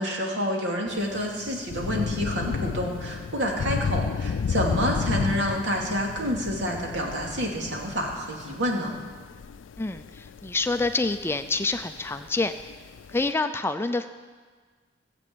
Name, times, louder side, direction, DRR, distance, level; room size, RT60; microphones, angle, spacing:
voice 1, 0.0-8.9, equal, 70° right, -1 dB, 2.6 m, -28 dB
Thunder / Rain, 0.9-13.3, left 6 dB, 90° left, 0.4 m, -32 dB
voice 2, 9.8-12.5 13.1-14.1, left 3 dB, 15° left, 9 dB, 0.4 m, -27 dB
17.0 x 7.6 x 7.9 m, 1.5 s
head